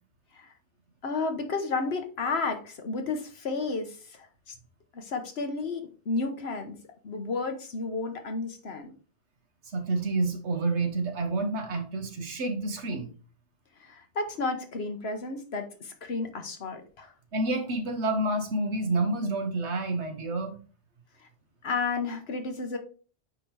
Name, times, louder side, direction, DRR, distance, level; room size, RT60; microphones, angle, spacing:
voice 1, 1.0-4.5 4.9-6.8 7.0-8.9 13.8-17.1 21.2-21.3 21.6-22.8, left 3 dB, 70° left, 6 dB, 1.3 m, -32 dB
voice 2, 9.6-13.1 17.3-20.6, right 2 dB, 90° right, 6 dB, 1.5 m, -29 dB
9.1 x 3.9 x 3.3 m, 0.38 s
omnidirectional pair, 1.1 m